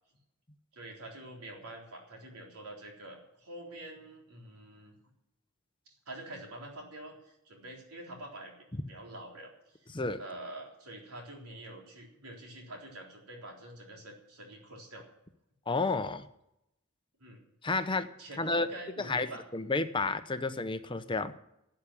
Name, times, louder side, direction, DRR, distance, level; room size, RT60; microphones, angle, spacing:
voice 1, 0.7-4.9 6.1-15.0 17.2-17.4 18.2-19.4, right 1 dB, 80° right, 0 dB, 3.9 m, -46 dB
voice 2, 15.7-16.3 17.6-18.1 18.4-18.7 19.0-19.3 19.5-21.3, left 3 dB, 20° left, 10 dB, 0.8 m, -31 dB
12.0 x 8.8 x 9.9 m, 0.83 s
head